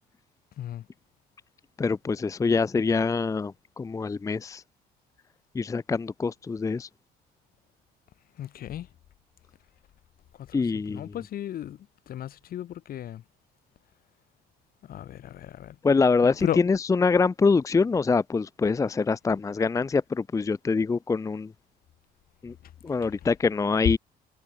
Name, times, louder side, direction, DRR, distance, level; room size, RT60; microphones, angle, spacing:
voice 1, 1.8-4.6 5.5-6.9 10.5-11.1 15.8-21.5 22.4-22.5 22.8-24.0, left 4 dB, 20° left, 0.6 m, -25 dB
voice 2, 8.4-8.9 10.5-11.8 12.1-13.2 14.9-15.7 16.4-16.6, left 11 dB, 60° left, 3.0 m, -35 dB
cardioid pair, 110°, 17 cm